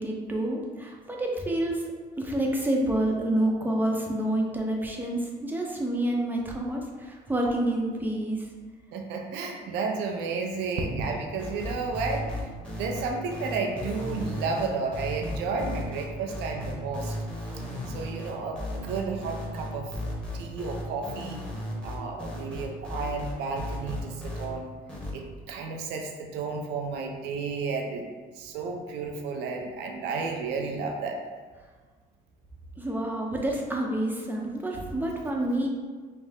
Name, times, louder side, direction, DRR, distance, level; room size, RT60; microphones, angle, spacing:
voice 1, 0.0-1.8 2.2-8.4 32.8-35.7, right 1 dB, 10° right, -1 dB, 0.7 m, -28 dB
voice 2, 8.9-12.3 12.7-17.1 17.9-19.9 20.3-21.4 21.8-24.7 25.1-28.0 28.4-31.2, right 4 dB, 85° right, 2 dB, 0.6 m, -32 dB
sound 1, 11.4-24.5 24.9-25.1, left 1 dB, 5° left, 1.1 m, -35 dB
5.5 x 2.1 x 3.5 m, 1.5 s
cardioid pair, 110°, 17 cm